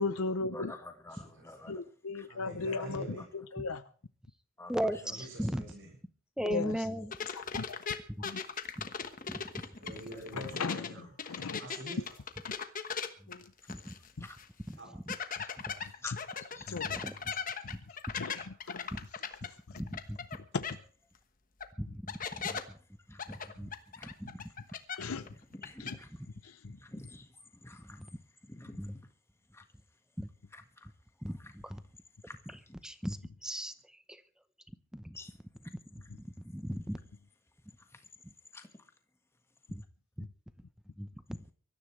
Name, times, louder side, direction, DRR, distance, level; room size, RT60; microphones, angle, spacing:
voice 1, 0.0-0.7 1.7-3.8 6.4-6.7 7.3-7.6 8.2-8.4 10.3-10.9 11.2-11.6 13.3-13.5 16.7-16.9 17.6-17.8 18.1-18.9 20.5-20.6 25.0-25.2 25.8-26.0 26.4-26.5, left 4 dB, 80° left, 0.7 m, -36 dB
voice 2, 0.5-1.8 2.1-2.3 2.5-2.8 3.2-3.3 4.6-4.9 14.2-14.4 15.8-16.8 22.5-22.6 23.1-23.4 24.0-24.1 25.1-26.1 26.6-28.1 28.5-28.8 29.5-29.6 30.5-30.9 31.4-31.5 32.2-32.8 35.1-35.3 37.8-38.0 38.5-38.9, left 2 dB, 10° left, 1.6 m, -49 dB
voice 3, 1.1-1.4 2.3-3.2 5.0-5.9 9.8-12.0 14.8-14.9 15.7-15.8, equal, 60° right, 7.6 m, -46 dB
voice 4, 4.7-5.6 6.4-7.3 8.1-8.2 8.8-8.9 9.3-9.5 9.9-10.0 13.2-13.3 13.7-14.3 14.7-15.2 15.7-15.8 16.8-17.3 17.6-17.8 18.9-19.0 19.7-20.4 21.8-22.8 23.1-23.7 24.0-24.3 27.8-28.1 28.8-28.9 30.2-30.3 31.2-31.8 32.8-34.2 34.7-35.2 35.9-37.0 38.2-38.3 39.7-39.8 40.2-40.3 41.0-41.4, equal, 5° right, 0.8 m, -38 dB
sound 1, 7.1-10.9 11.2-14.1 14.4-14.5 15.1-20.4 20.6-20.7 21.6-21.7 22.1-22.6 23.2-25.3 25.5-25.9, left 6 dB, 40° left, 1.3 m, -38 dB
24.0 x 13.5 x 3.3 m
head